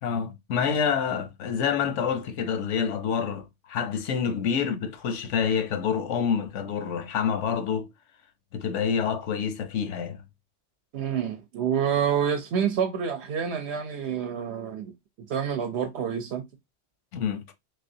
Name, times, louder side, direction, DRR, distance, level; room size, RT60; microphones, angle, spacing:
voice 1, 0.0-7.9 8.5-10.2 17.1-17.4, left 7 dB, 85° left, 1.1 m, -27 dB
voice 2, 10.9-14.9 15.2-16.4, right 8 dB, 65° right, 0.9 m, -28 dB
3.9 x 3.3 x 2.6 m
omnidirectional pair, 1.2 m